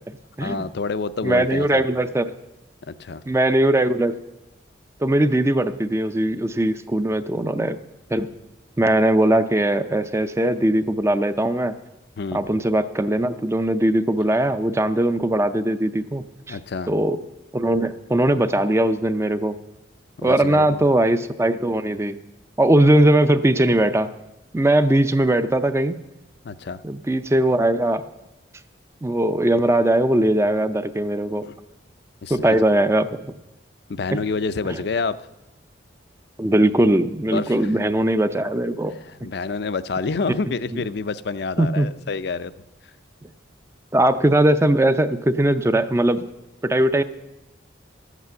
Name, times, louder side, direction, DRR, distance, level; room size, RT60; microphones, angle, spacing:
voice 1, 0.4-1.9 2.9-3.2 12.2-12.4 16.5-16.9 20.2-20.9 26.4-26.8 31.4-31.6 32.2-32.6 33.9-35.2 37.3-37.6 39.1-42.5, left 4 dB, 55° left, 15 dB, 0.5 m, -28 dB
voice 2, 1.2-2.3 3.3-4.1 5.0-7.8 8.1-8.3 8.8-11.8 12.3-16.6 16.9-17.2 17.5-19.6 20.2-22.2 22.6-24.1 24.5-26.0 26.8-28.0 29.0-31.4 32.3-33.3 36.4-39.0 41.6-41.9 43.9-46.3 46.6-47.0, right 1 dB, 15° right, 11 dB, 0.4 m, -20 dB
12.5 x 8.3 x 7.6 m, 0.96 s
head